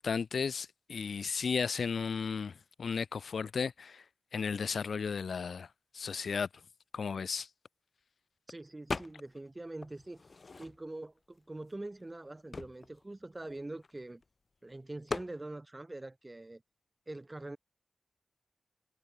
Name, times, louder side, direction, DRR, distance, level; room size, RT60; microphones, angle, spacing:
voice 1, 0.0-4.0 4.3-5.7 5.9-6.5 6.9-7.5, left 5 dB, 75° left, 0.4 m, -34 dB
voice 2, 8.5-10.2 10.6-14.2 14.6-16.6 17.1-17.6, right 2 dB, 25° right, 1.5 m, -44 dB
sound 1, 8.9-9.5 9.8-11.1 11.7-11.8 12.0-14.2 15.1-15.4, left 3 dB, 50° left, 2.5 m, -40 dB
cardioid pair, 65°, 0 cm